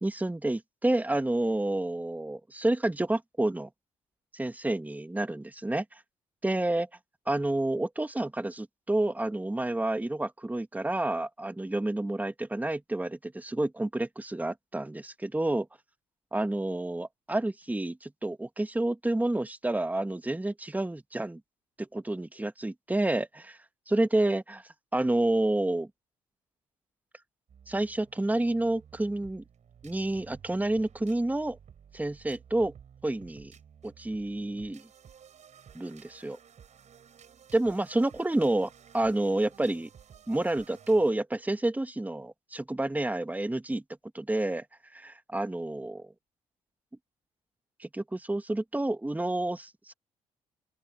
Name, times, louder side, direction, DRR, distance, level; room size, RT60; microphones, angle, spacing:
voice 1, 0.0-3.7 4.3-6.0 6.4-6.9 7.3-15.7 16.3-21.4 21.8-23.6 23.9-24.6 24.9-25.9 27.7-29.4 29.8-31.6 31.9-32.7 33.0-33.5 33.8-34.8 35.7-36.4 37.5-39.9 40.3-43.8 44.1-44.6 44.9-46.1 47.8-49.9, right 1 dB, 10° right, 1.7 m, -29 dB
sound 1, 27.5-41.1, right 8 dB, 55° right, 6.6 m, -54 dB
open air
hypercardioid pair, 50°, 14 cm